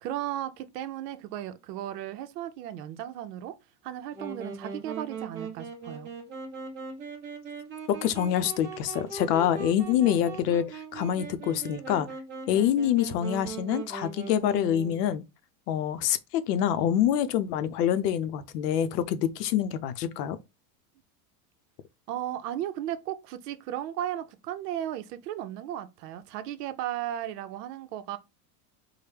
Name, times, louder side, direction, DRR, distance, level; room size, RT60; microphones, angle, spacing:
voice 1, 0.0-3.5 3.8-6.1 22.1-28.2, right 12 dB, 85° right, 0.7 m, -35 dB
Wind instrument woodwind instrument, 4.1-15.1, right 4 dB, 25° right, 0.9 m, -40 dB
voice 2, 8.0-12.1 12.5-15.2 15.7-20.4, left 10 dB, 80° left, 0.7 m, -26 dB
4.6 x 2.1 x 3.3 m
supercardioid pair, 165°, 47 cm